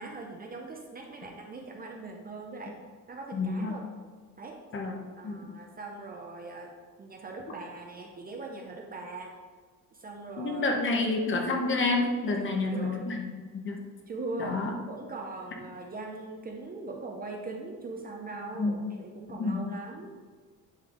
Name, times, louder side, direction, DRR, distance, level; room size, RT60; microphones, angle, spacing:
voice 1, 0.0-2.8 3.1-3.8 4.4-4.6 5.2-6.7 7.0-9.3 9.9-10.8 12.4-13.0 14.1-14.6 14.9-20.1, right 3 dB, 25° right, 1 dB, 0.5 m, -41 dB
voice 2, 3.3-3.8 4.7-5.5 10.4-13.3 13.5-13.8 14.4-14.8 18.6-18.7 19.3-19.7, left 3 dB, 35° left, 2 dB, 0.8 m, -29 dB
9.7 x 3.2 x 3.8 m, 1.5 s
cardioid pair, 175°, 35 cm